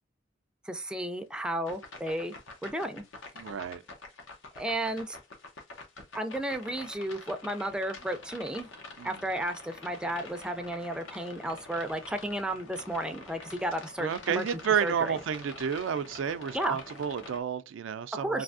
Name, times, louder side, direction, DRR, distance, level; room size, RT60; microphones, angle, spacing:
voice 1, 0.6-2.3 2.6-3.0 4.5-5.2 6.1-8.7 9.0-14.5 14.8-15.2 16.5-16.8 18.1-18.4, right 1 dB, 5° right, 0.3 m, -33 dB
sound 1, 1.7-17.4, left 3 dB, 85° left, 0.8 m, -47 dB
voice 2, 3.4-3.8 9.0-9.2 14.0-18.4, right 7 dB, 80° right, 0.4 m, -31 dB
3.3 x 2.6 x 2.5 m
head